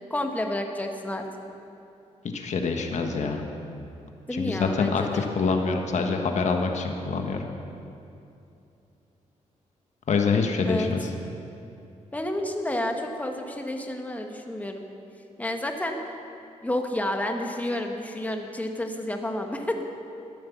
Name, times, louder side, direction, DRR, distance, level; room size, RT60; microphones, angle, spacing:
voice 1, 0.1-1.3 4.3-5.3 10.6-10.9 12.1-14.9 15.4-16.0 16.6-19.8, left 1 dB, 10° left, 3 dB, 1.6 m, -30 dB
voice 2, 2.3-3.4 4.3-7.4 10.1-11.1, left 4 dB, 65° left, 3 dB, 1.4 m, -25 dB
14.0 x 10.0 x 7.2 m, 2.7 s
cardioid pair, 85°, 13 cm